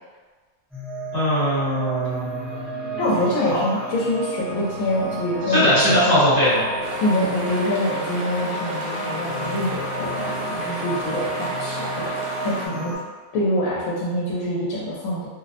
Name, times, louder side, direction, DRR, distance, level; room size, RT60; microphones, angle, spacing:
sound 1, 0.7-12.9, right 2 dB, ahead, 0.6 m, -31 dB
voice 1, 1.1-3.0 3.5-3.6 5.5-6.6, equal, 50° left, -10 dB, 1.3 m, -21 dB
voice 2, 3.0-6.2 7.0-12.2 12.4-12.9 13.3-15.3, left 1 dB, 75° left, -6 dB, 1.0 m, -25 dB
sound 2, 6.8-12.7, right 1 dB, 60° right, 0.6 m, -33 dB
2.5 x 2.0 x 2.6 m, 1.4 s
omnidirectional pair, 1.4 m